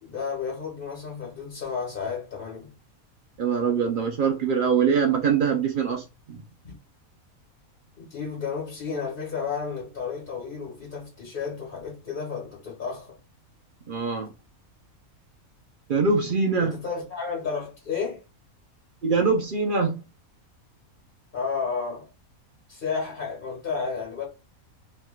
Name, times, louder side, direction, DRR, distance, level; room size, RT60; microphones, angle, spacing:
voice 1, 0.0-2.7 6.6-6.8 8.0-13.2 16.6-18.2 21.3-22.1 22.7-24.3, left 5 dB, 40° left, 1.3 m, -32 dB
voice 2, 3.4-6.4 13.9-14.3 15.9-16.8 19.0-20.0, right 5 dB, 65° right, 0.5 m, -23 dB
3.3 x 2.9 x 2.2 m
omnidirectional pair, 1.5 m